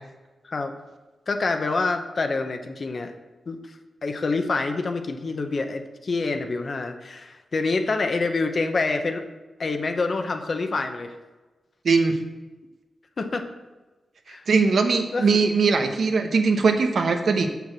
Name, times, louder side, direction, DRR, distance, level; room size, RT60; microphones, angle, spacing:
voice 1, 1.3-3.1 3.5-9.2 9.6-11.1 13.2-13.5 14.3-14.4 15.1-15.4, left 3 dB, 50° left, 6 dB, 1.0 m, -27 dB
voice 2, 11.8-12.2 14.3-17.5, right 4 dB, 70° right, 5 dB, 1.0 m, -21 dB
6.9 x 6.5 x 6.3 m, 1.2 s
cardioid pair, 70°, 0 cm